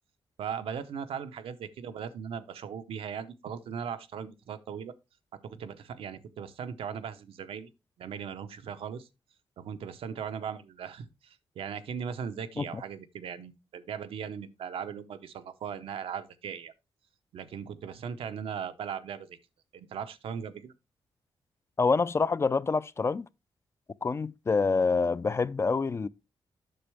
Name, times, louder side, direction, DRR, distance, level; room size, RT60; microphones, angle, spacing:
voice 1, 0.4-4.9 5.4-7.7 8.0-9.1 9.6-16.7 17.3-19.4 19.7-20.7, right 7 dB, 85° right, 0.7 m, -38 dB
voice 2, 21.8-23.3 24.0-26.1, left 4 dB, 30° left, 0.3 m, -26 dB
7.8 x 6.2 x 3.3 m
cardioid pair, 110°, 9 cm